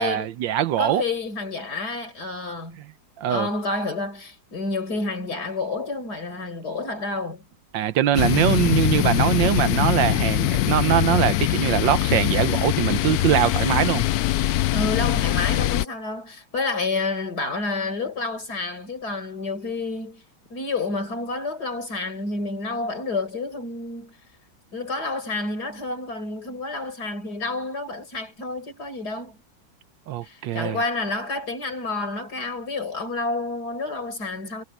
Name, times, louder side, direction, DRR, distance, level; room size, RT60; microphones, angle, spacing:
voice 1, 0.0-1.0 3.2-3.5 7.7-14.0 30.1-30.8, right 12 dB, 75° right, 1.5 m, -22 dB
voice 2, 0.8-2.8 3.3-7.4 14.7-20.2 20.5-24.2 24.7-29.4 30.2-34.6, left 3 dB, 55° left, 5.3 m, -29 dB
sound 1, 8.1-15.8, left 15 dB, 75° left, 0.9 m, -22 dB
omnidirectional pair, 2.1 m